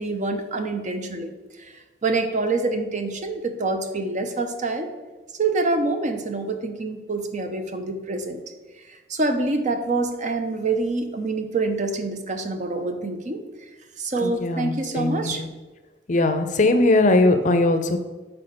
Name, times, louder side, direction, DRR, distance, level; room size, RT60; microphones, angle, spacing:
voice 1, 0.0-4.9 5.4-8.4 8.9-13.4 14.0-15.4 16.7-16.8, right 3 dB, 40° right, 6 dB, 0.6 m, -26 dB
voice 2, 14.2-15.5 16.1-18.0, left 2 dB, 45° left, 8 dB, 0.5 m, -20 dB
6.1 x 4.5 x 5.0 m, 1.2 s
head